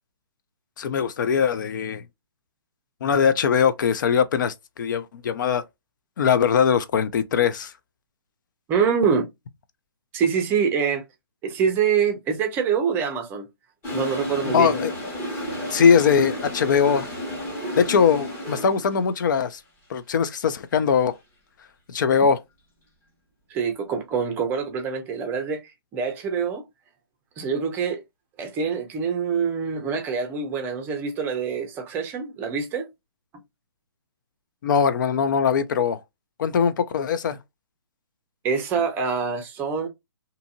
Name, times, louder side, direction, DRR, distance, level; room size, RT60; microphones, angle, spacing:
voice 1, 0.8-2.0 3.0-5.6 6.2-7.7 14.5-14.9 15.7-17.1 17.8-19.6 19.9-21.1 21.9-22.4 34.6-36.0 36.4-37.4, left 6 dB, 50° left, 0.4 m, -21 dB
voice 2, 8.7-9.3 10.1-11.0 11.4-13.5 13.9-14.7 23.5-25.6 25.9-26.7 27.4-28.0 28.4-32.9 38.4-39.9, right 6 dB, 15° right, 0.5 m, -25 dB
Toilet flush, 13.8-19.1, left 1 dB, 20° left, 1.1 m, -32 dB
2.7 x 2.5 x 2.5 m
hypercardioid pair, 150°, 13 cm